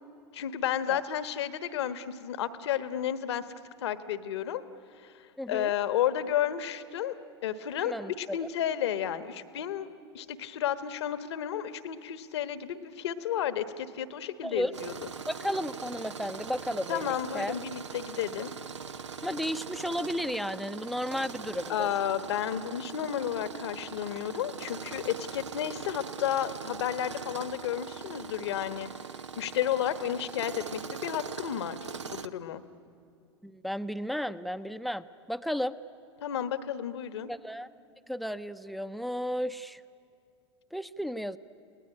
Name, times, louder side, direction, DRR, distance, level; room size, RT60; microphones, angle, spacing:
voice 1, 0.3-3.4 3.8-4.6 5.0-5.1 5.5-7.1 7.4-9.9 10.1-14.9 16.9-18.5 21.7-28.9 29.4-31.8 32.1-32.6 36.2-37.3, left 10 dB, 65° left, 12 dB, 1.3 m, -32 dB
voice 2, 5.4-5.7 7.8-8.5 14.4-14.7 15.3-17.6 19.2-21.9 33.4-35.7 37.3-37.7 38.1-39.8 40.7-41.4, equal, ahead, 12 dB, 0.7 m, -33 dB
Tools, 14.7-32.3, right 5 dB, 85° right, 0.9 m, -41 dB
30.0 x 19.0 x 9.8 m, 2.5 s
figure-of-eight pair, 90°, 15 cm